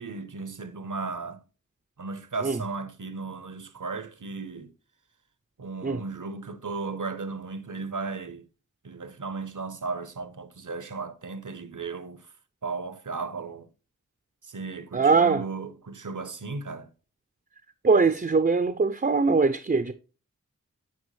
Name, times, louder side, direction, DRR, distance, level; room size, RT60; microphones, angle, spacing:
voice 1, 0.0-1.4 2.0-4.7 5.6-8.5 8.8-12.3 12.6-13.7 14.4-16.9, right 4 dB, 70° right, 0.8 m, -35 dB
voice 2, 14.9-15.4 17.8-19.9, right 4 dB, 30° right, 0.5 m, -22 dB
9.4 x 4.6 x 3.1 m
wide cardioid pair, 45°, 32 cm